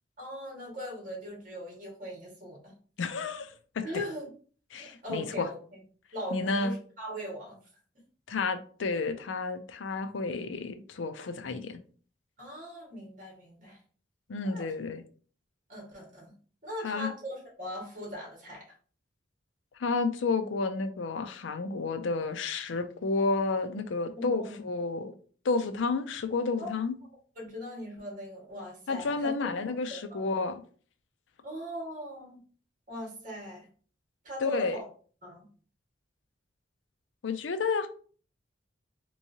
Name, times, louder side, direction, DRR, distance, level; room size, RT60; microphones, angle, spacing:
voice 1, 0.2-2.7 3.8-4.3 4.8-5.8 6.1-7.6 12.4-13.8 14.4-14.6 15.7-16.3 16.6-18.7 24.1-24.6 26.6-26.7 27.3-29.5 29.9-30.2 31.4-32.4 32.9-33.6 34.2-34.8 35.2-35.5, equal, 45° right, 1.7 m, -40 dB
voice 2, 3.0-3.8 4.7-5.5 6.3-6.8 8.3-11.8 14.3-15.0 16.8-17.1 19.8-25.1 25.4-26.9 28.9-30.6 34.4-34.8 37.2-37.9, left 4 dB, 85° left, 0.5 m, -31 dB
3.5 x 3.1 x 2.7 m
head